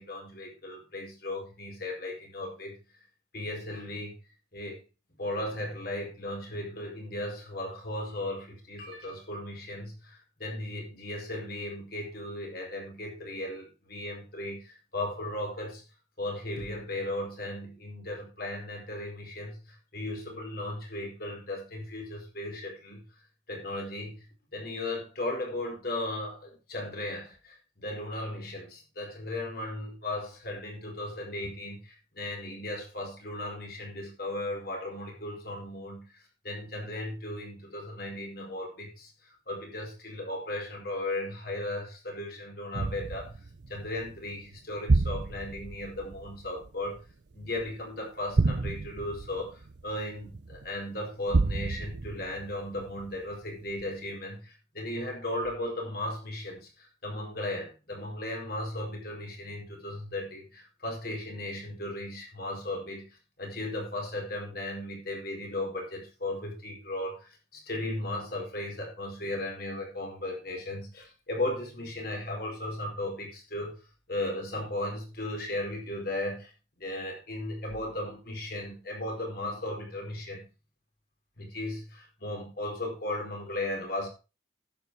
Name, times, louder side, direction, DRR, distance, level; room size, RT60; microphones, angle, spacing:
voice 1, 0.0-2.8 3.3-4.2 4.5-4.8 5.2-15.8 16.2-23.0 23.5-24.2 24.5-36.1 36.4-43.3 43.7-47.0 47.3-63.1 63.4-73.8 74.1-76.5 76.8-80.4 81.4-84.1, left 1 dB, 50° left, 4.6 m, -36 dB
sound 1, 42.7-47.8 48.3-50.7 51.3-53.3 53.8-53.9, right 3 dB, 60° right, 0.6 m, -30 dB
11.0 x 8.4 x 4.7 m
head